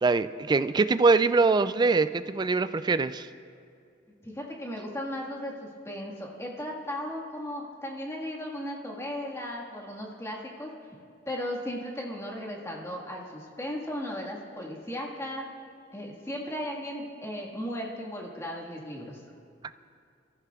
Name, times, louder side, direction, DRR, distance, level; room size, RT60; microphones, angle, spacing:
voice 1, 0.0-3.3, right 4 dB, 25° right, 13 dB, 0.3 m, -23 dB
voice 2, 4.2-10.7 11.3-15.5 15.9-19.2, equal, 15° left, -2 dB, 1.8 m, -36 dB
26.0 x 14.0 x 2.4 m, 2.4 s
head